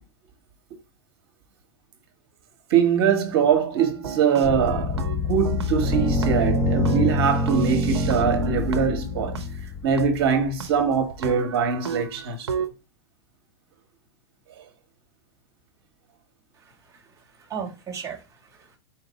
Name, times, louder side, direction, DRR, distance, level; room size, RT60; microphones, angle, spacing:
voice 1, 2.7-9.4 9.8-12.5 14.6-14.7, right 7 dB, 65° right, 1.4 m, -23 dB
sound 1, 3.8-6.6 6.9-9.5 10.0-10.1 10.6-10.7 11.1-12.7, right 6 dB, 85° right, 0.7 m, -34 dB
sound 2, 4.4-10.9, left 2 dB, 20° left, 1.4 m, -25 dB
voice 2, 16.6-18.8, right 7 dB, 25° right, 1.6 m, -38 dB
4.4 x 2.6 x 4.0 m
hypercardioid pair, 110°, 14 cm